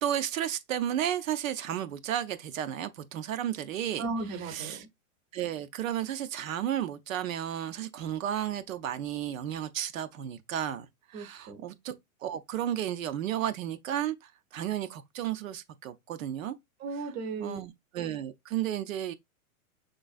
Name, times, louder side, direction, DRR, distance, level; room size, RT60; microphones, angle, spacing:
voice 1, 0.0-4.0 4.5-4.8 5.3-11.9 12.2-16.5 17.4-19.1, right 11 dB, 65° right, 0.7 m, -33 dB
voice 2, 4.0-4.9 11.1-11.6 16.8-17.6, right 3 dB, 25° right, 0.6 m, -36 dB
5.3 x 3.9 x 2.4 m
hypercardioid pair, 155°, 42 cm